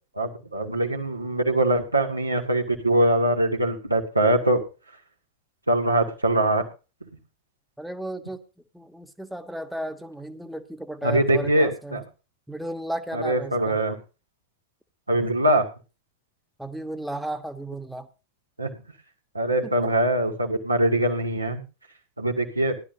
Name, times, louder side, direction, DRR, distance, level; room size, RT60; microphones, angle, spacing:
voice 1, 0.2-4.6 5.7-6.6 11.0-12.0 13.1-14.0 15.1-15.7 18.6-18.7 19.3-21.6 22.2-22.8, right 1 dB, 85° right, 2 dB, 2.1 m, -22 dB
voice 2, 7.8-8.4 8.7-12.0 12.5-13.8 16.6-18.1 19.6-19.7, right 1 dB, ahead, 6 dB, 1.4 m, -34 dB
18.5 x 11.5 x 2.7 m, 0.31 s
figure-of-eight pair, 90°, 0 cm